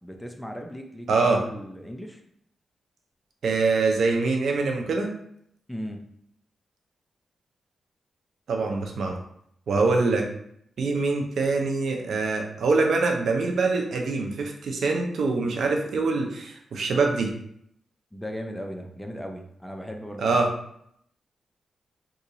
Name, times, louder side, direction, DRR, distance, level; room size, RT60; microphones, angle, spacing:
voice 1, 0.0-2.2 5.7-6.0 18.1-20.4, equal, 5° left, 3 dB, 0.6 m, -37 dB
voice 2, 1.1-1.4 3.4-5.1 8.5-9.2 9.7-10.2 10.8-17.3 20.2-20.5, right 3 dB, 75° right, 2 dB, 0.6 m, -24 dB
2.8 x 2.6 x 3.8 m, 0.71 s
cardioid pair, 55°, 0 cm